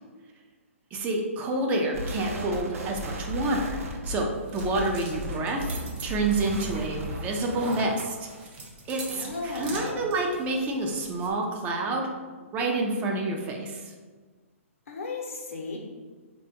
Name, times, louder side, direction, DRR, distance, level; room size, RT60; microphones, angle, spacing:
voice 1, 0.9-8.2 8.9-12.1 12.5-13.9, right 2 dB, 20° right, 0 dB, 0.4 m, -28 dB
sound 1, 1.9-7.4, equal, 75° right, 0.5 m, -35 dB
sound 2, 3.9-11.3, right 3 dB, 45° right, 0.9 m, -43 dB
voice 2, 9.1-10.1 14.9-15.8, left 3 dB, 70° left, 1 dB, 0.7 m, -35 dB
3.6 x 2.2 x 2.8 m, 1.4 s
hypercardioid pair, 135°, 8 cm